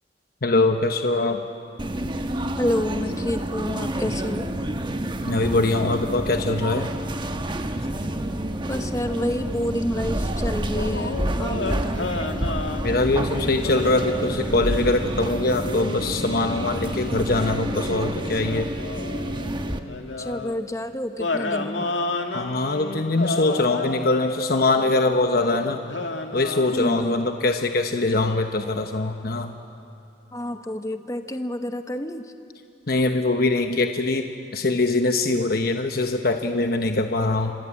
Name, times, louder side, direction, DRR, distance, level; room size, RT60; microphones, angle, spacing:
voice 1, 0.4-1.4 5.3-6.9 12.8-18.7 22.3-25.8 26.3-29.5 32.9-34.2 34.5-37.5, left 2 dB, 55° left, 5 dB, 1.0 m, -22 dB
sound 1, 1.8-19.8, right 1 dB, 25° right, 1.1 m, -29 dB
voice 2, 2.6-4.5 8.7-12.1 20.2-21.9 26.7-27.3 30.3-32.3, left 1 dB, 15° left, 7 dB, 1.0 m, -29 dB
sound 2, 10.7-15.0 15.6-20.6 21.2-26.9, left 2 dB, 85° left, 1.8 m, -32 dB
28.0 x 25.0 x 8.5 m, 2.7 s
head